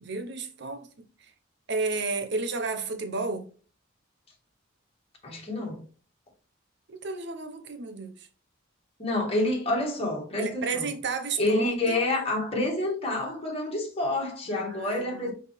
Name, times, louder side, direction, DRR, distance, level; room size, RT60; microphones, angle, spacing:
voice 1, 0.0-0.9 1.7-3.5 6.9-8.3 10.4-12.0 14.5-15.3, right 4 dB, 60° right, 0.9 m, -32 dB
voice 2, 5.2-5.8 9.0-10.9 11.4-15.3, left 2 dB, 30° left, 2.5 m, -28 dB
5.7 x 5.2 x 3.5 m
head